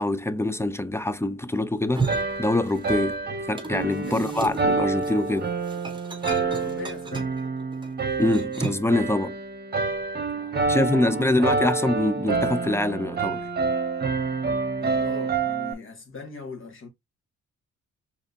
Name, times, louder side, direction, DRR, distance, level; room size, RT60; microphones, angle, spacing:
voice 1, 0.0-2.1 2.4-5.5 8.2-9.4 10.7-13.4, left 1 dB, 10° left, 0.5 m, -24 dB
sound 1, 1.7-3.1 3.4-9.0, right 3 dB, 15° right, 1.5 m, -35 dB
sound 2, 2.1-15.7, right 4 dB, 35° right, 1.4 m, -28 dB
voice 2, 4.1-4.5 6.4-7.4 10.3-11.4 14.8-16.9, left 4 dB, 45° left, 1.9 m, -41 dB
4.9 x 3.5 x 2.8 m
cardioid pair, 90°, 30 cm